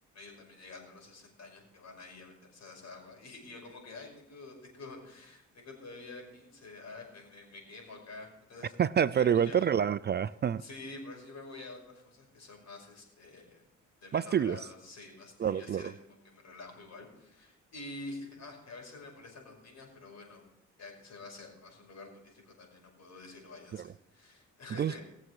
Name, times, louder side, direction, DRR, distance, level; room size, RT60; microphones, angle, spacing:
voice 1, 0.1-8.8 9.1-9.7 10.6-13.6 14.0-20.4 20.8-25.0, left 2 dB, 65° left, 5.6 m, -48 dB
voice 2, 8.8-10.6 14.1-14.6 15.4-15.9 23.7-23.9 24.8-25.0, right 8 dB, 35° right, 0.4 m, -27 dB
20.5 x 7.3 x 4.8 m
cardioid pair, 90°, 30 cm